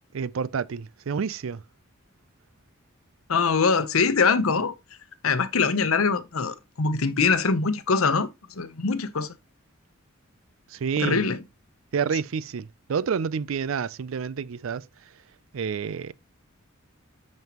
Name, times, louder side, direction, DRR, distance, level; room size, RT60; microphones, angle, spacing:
voice 1, 0.1-1.6 10.7-11.2 11.9-14.9 15.5-16.1, right 6 dB, 75° right, 0.4 m, -29 dB
voice 2, 3.3-4.7 5.2-8.3 8.6-9.3 11.0-11.4, left 5 dB, 90° left, 0.8 m, -23 dB
9.2 x 5.4 x 2.9 m
head